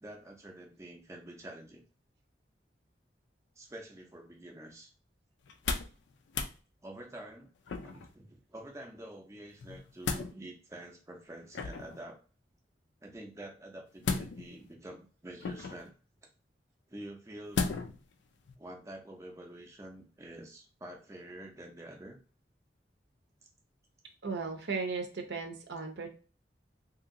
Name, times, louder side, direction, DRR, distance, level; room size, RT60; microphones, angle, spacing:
voice 1, 0.0-1.8 3.6-4.9 6.8-7.5 7.8-12.2 13.0-15.9 16.9-17.7 18.6-22.2, right 1 dB, 15° right, 0 dB, 0.5 m, -47 dB
sound 1, 5.4-6.0 6.3-6.6 7.7-8.1 9.6-10.3 11.5-12.0 14.0-14.6 15.4-15.9 17.5-18.0 18.5-18.6, left 4 dB, 80° left, 0.4 m, -34 dB
voice 2, 24.2-26.1, right 4 dB, 70° right, 3 dB, 0.6 m, -36 dB
2.8 x 2.7 x 2.5 m, 0.37 s
head